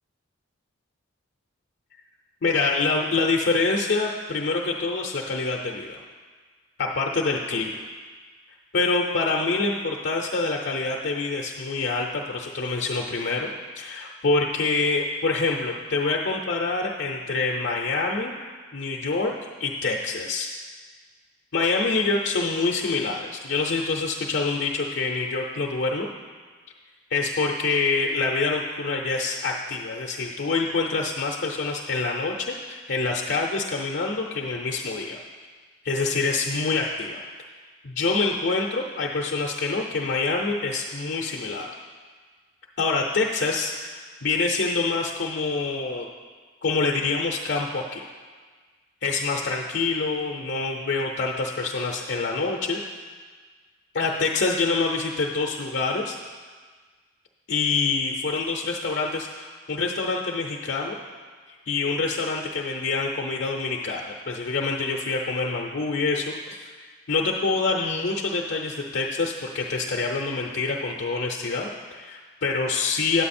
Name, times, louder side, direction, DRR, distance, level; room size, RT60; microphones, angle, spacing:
voice 1, 2.4-6.0 6.8-7.7 8.7-13.5 13.8-18.3 18.7-19.3 19.6-20.5 21.5-26.1 27.1-35.2 35.8-37.2 37.8-41.7 42.8-46.1 46.6-48.0 49.0-52.8 53.9-56.2 57.5-61.0 61.5-66.7 67.1-73.2, left 3 dB, 55° left, 0 dB, 0.6 m, -26 dB
9.5 x 8.1 x 4.2 m, 1.5 s
head